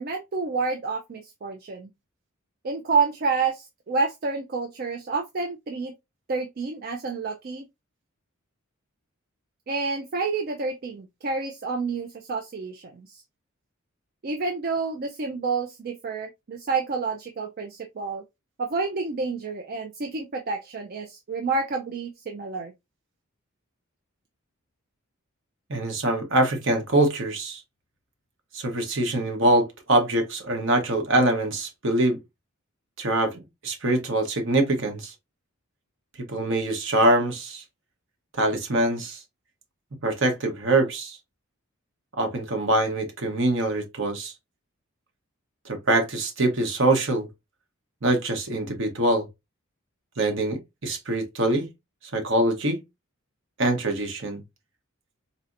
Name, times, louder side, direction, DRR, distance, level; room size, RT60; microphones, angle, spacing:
voice 1, 0.0-1.9 2.6-5.9 6.3-7.6 9.7-13.2 14.2-18.2 18.6-22.7, right 4 dB, 45° right, 0.4 m, -29 dB
voice 2, 25.7-27.6 28.5-32.2 33.0-35.1 36.3-37.6 38.4-39.2 40.0-41.2 42.2-44.3 45.6-47.3 48.0-49.3 50.2-51.7 52.1-52.8 53.6-54.4, right 1 dB, 60° right, 1.1 m, -24 dB
4.2 x 2.7 x 2.5 m
head